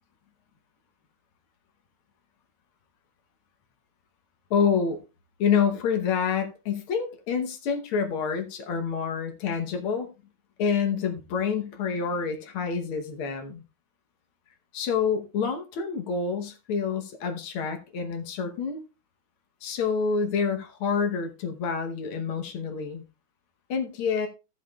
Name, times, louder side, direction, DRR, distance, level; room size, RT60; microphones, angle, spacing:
voice 1, 4.5-5.0 5.4-10.1 10.6-13.6 14.7-18.8 19.6-23.0 23.7-24.3, left 6 dB, 85° left, 2.0 m, -27 dB
14.5 x 7.2 x 2.3 m
omnidirectional pair, 2.3 m